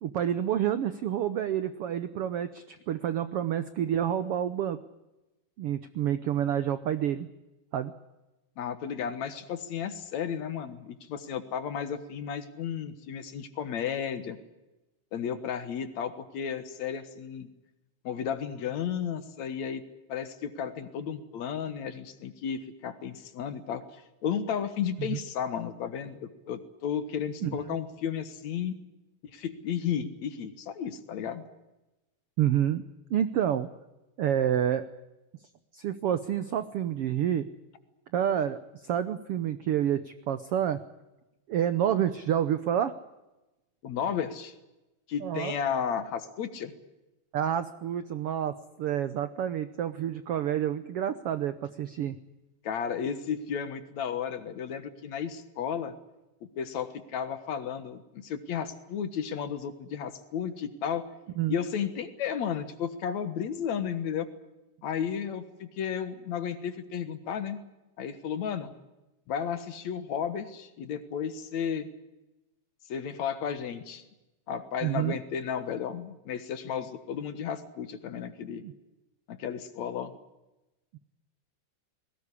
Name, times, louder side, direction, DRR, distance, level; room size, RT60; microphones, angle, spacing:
voice 1, 0.0-4.8 5.6-7.3 7.7-7.9 25.0-25.2 27.4-27.8 32.4-32.8 33.1-33.7 34.2-34.9 35.7-37.4 38.1-40.8 41.5-42.9 45.2-45.6 47.3-52.2 61.4-61.6 74.8-75.2 78.6-78.7, right 10 dB, 75° right, 12 dB, 1.3 m, -28 dB
voice 2, 8.6-14.4 15.1-17.5 18.0-19.8 20.1-28.8 29.3-31.4 43.8-44.5 45.1-46.7 52.6-55.9 56.4-61.1 61.5-64.3 64.8-67.6 68.0-68.7 69.3-71.9 72.9-74.0 74.5-78.6 79.3-80.1, left 8 dB, 60° left, 11 dB, 2.5 m, -33 dB
21.0 x 18.0 x 9.9 m, 1.0 s
omnidirectional pair, 3.8 m